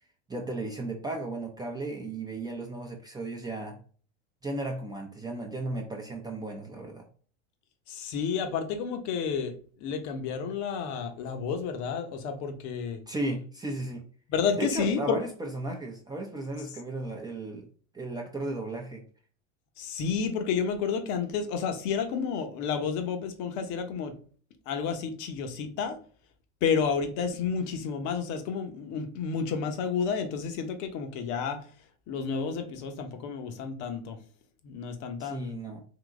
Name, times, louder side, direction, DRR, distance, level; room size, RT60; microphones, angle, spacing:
voice 1, 0.3-3.8 4.4-7.0 13.1-14.0 14.6-17.7 17.9-19.0 35.2-35.8, right 2 dB, 10° right, 1 dB, 0.6 m, -35 dB
voice 2, 7.9-9.5 9.8-13.0 14.3-15.2 19.8-24.1 24.7-26.0 26.6-31.6 32.1-34.2 34.6-35.6, left 6 dB, 55° left, 6 dB, 1.0 m, -30 dB
3.8 x 2.8 x 3.6 m, 0.44 s
hypercardioid pair, 105°, 35 cm